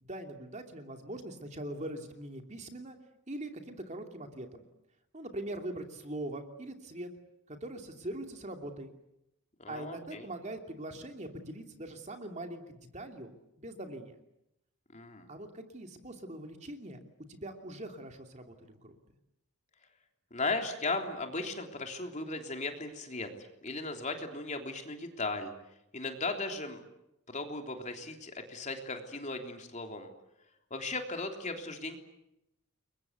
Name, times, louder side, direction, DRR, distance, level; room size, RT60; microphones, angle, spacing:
voice 1, 0.0-3.0 3.3-4.6 5.1-7.1 7.5-8.9 9.7-13.3 13.6-14.1 15.3-17.0 17.3-18.9, right 1 dB, 30° right, 5 dB, 2.8 m, -42 dB
voice 2, 9.6-10.3 14.9-15.3 20.3-23.3 23.6-25.5 25.9-26.8 27.3-30.1 30.7-32.0, left 3 dB, 30° left, 4 dB, 3.5 m, -36 dB
30.0 x 23.0 x 8.2 m, 0.85 s
head